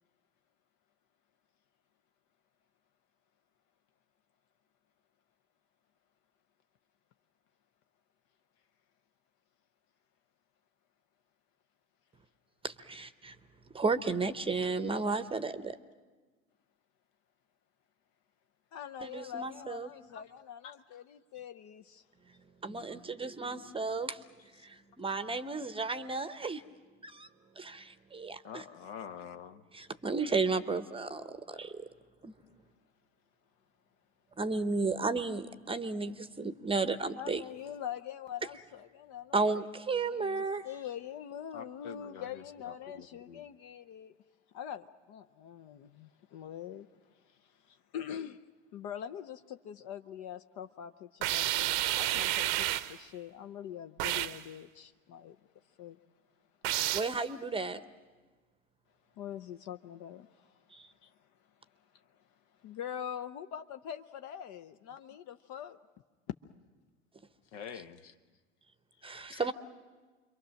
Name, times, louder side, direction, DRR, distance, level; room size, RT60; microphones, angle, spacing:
voice 1, 12.6-13.4 13.7-15.8 19.0-19.9 22.6-24.2 24.6-26.6 27.0-27.3 27.6-28.7 29.7-31.9 32.2-32.3 34.4-37.4 39.3-40.6 56.9-57.8 60.7-60.9 67.7-67.8 69.0-69.5, right 4 dB, 15° right, 0.8 m, -33 dB
voice 2, 18.7-22.0 37.2-39.6 40.0-44.1 44.5-46.9 47.9-48.4 48.7-55.4 55.8-56.0 59.2-60.5 61.0-61.1 62.6-65.8, left 9 dB, 50° left, 0.7 m, -44 dB
voice 3, 28.4-29.6 41.5-42.2 42.9-43.4 67.5-68.1 69.3-69.4, left 7 dB, 70° left, 1.2 m, -45 dB
sound 1, 51.2-53.0 54.0-54.4 56.6-57.2, right 15 dB, 70° right, 0.8 m, -30 dB
27.0 x 23.0 x 6.4 m
hypercardioid pair, 80°, 36 cm